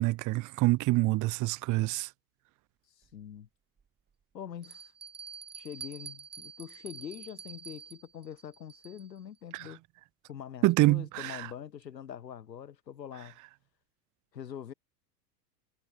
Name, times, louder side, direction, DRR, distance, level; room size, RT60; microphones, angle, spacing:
voice 1, 0.0-2.1 9.5-9.7 10.6-11.5, right 19 dB, 40° right, 1.1 m, -26 dB
voice 2, 3.0-3.5 4.3-4.9 5.5-9.8 10.3-13.4 14.3-14.7, left 9 dB, 90° left, 5.5 m, -44 dB
Bell, 3.0-3.1 3.8-3.9 4.6-9.2, right 6 dB, 20° right, 4.0 m, -47 dB
hypercardioid pair, 105°, 49 cm